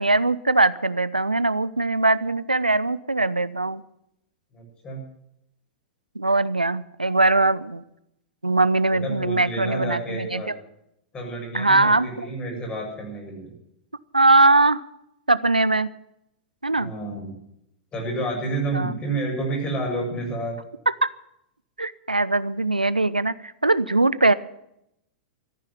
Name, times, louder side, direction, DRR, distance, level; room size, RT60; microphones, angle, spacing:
voice 1, 0.0-3.8 6.2-7.8 8.4-10.5 11.5-12.1 14.1-14.8 15.3-15.9 16.6-16.9 18.7-18.9 20.9-21.1 21.8-24.3, right 2 dB, 90° right, 18 dB, 0.6 m, -21 dB
voice 2, 4.5-5.0 8.9-10.5 11.1-13.5 16.8-17.3 17.9-20.5, right 2 dB, 25° left, -1 dB, 7.9 m, -30 dB
14.0 x 9.8 x 9.8 m, 0.79 s
figure-of-eight pair, 100°, 4 cm